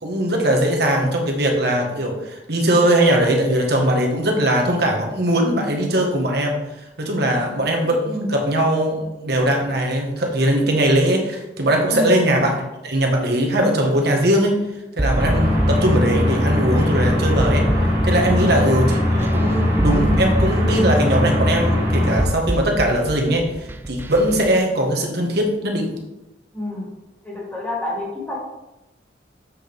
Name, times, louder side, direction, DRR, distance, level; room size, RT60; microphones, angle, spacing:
voice 1, 0.0-14.6 15.0-17.6 18.0-25.9, right 1 dB, 60° right, 2 dB, 1.5 m, -20 dB
voice 2, 11.9-12.2 18.3-18.6 26.5-26.9 27.2-28.4, left 2 dB, 10° left, -6 dB, 2.5 m, -28 dB
sound 1, 15.0-24.5, right 1 dB, 10° right, 0.4 m, -27 dB
sound 2, 15.1-22.2, left 1 dB, 35° right, 2.3 m, -20 dB
7.6 x 6.5 x 3.5 m, 0.95 s
head